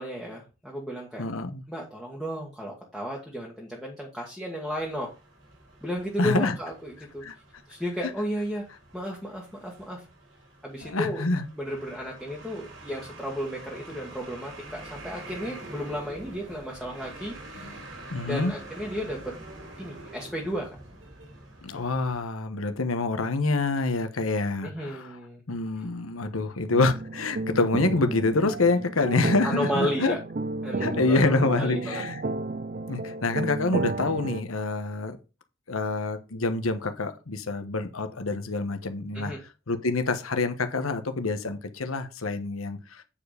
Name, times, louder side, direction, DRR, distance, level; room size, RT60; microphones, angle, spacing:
voice 1, 0.0-1.2 1.7-5.1 5.8-7.2 7.7-8.6 8.9-10.0 10.6-11.3 11.5-17.7 18.2-19.3 19.8-20.7 24.6-25.4 29.4-30.2 30.6-32.0 39.1-39.4, equal, ahead, 1.5 m, -33 dB
voice 2, 1.2-1.6 6.2-6.6 7.2-7.3 10.8-11.4 17.6-17.9 18.1-18.5 21.6-25.2 25.5-30.1 30.8-32.2 32.9-35.2 35.7-39.3 39.7-43.0, left 3 dB, 85° left, 1.1 m, -26 dB
sound 1, 4.7-22.2, right 2 dB, 65° right, 2.9 m, -46 dB
sound 2, 26.7-34.4, right 3 dB, 40° right, 0.4 m, -33 dB
8.7 x 4.9 x 5.1 m
head